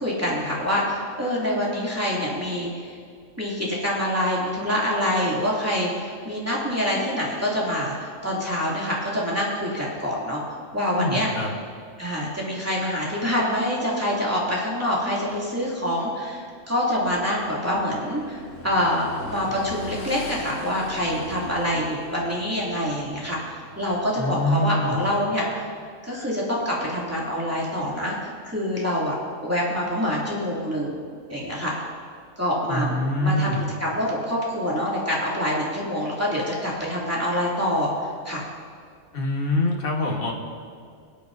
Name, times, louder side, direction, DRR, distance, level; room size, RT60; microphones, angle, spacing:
voice 1, 0.0-2.9 3.4-10.4 10.7-11.3 12.0-25.7 26.1-29.1 29.4-31.0 31.3-31.7 32.4-33.5 33.8-38.4, equal, 10° right, -6 dB, 2.6 m, -26 dB
voice 2, 10.9-11.5 24.2-25.0 32.7-33.6 39.1-40.3, left 1 dB, 45° left, 0 dB, 1.6 m, -24 dB
Motorcycle / Engine, 17.0-24.0, left 2 dB, 75° left, 1.5 m, -41 dB
22.0 x 8.8 x 2.7 m, 2.2 s
omnidirectional pair, 1.4 m